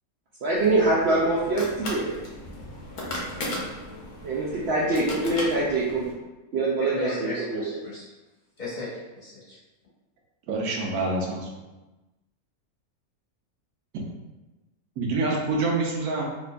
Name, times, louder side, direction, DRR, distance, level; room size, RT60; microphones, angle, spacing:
voice 1, 0.4-2.1 4.2-6.0 6.5-7.7, right 2 dB, 65° right, -5 dB, 0.7 m, -24 dB
sound 1, 0.6-6.1, left 1 dB, 85° left, 1.2 m, -36 dB
voice 2, 6.8-8.0 8.6-9.6, left 2 dB, 40° left, -8 dB, 0.9 m, -35 dB
voice 3, 10.5-11.5 15.0-16.2, right 3 dB, 90° right, -1 dB, 1.1 m, -26 dB
4.2 x 2.5 x 2.2 m, 1.1 s
omnidirectional pair, 1.5 m